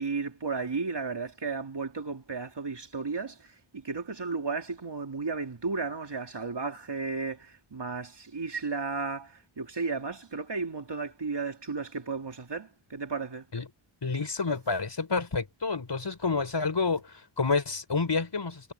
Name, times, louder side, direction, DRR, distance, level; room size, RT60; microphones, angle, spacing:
voice 1, 0.0-13.4, right 4 dB, 55° right, 3.0 m, -34 dB
voice 2, 14.0-18.7, left 4 dB, 55° left, 5.1 m, -29 dB
wide cardioid pair, 70°, 49 cm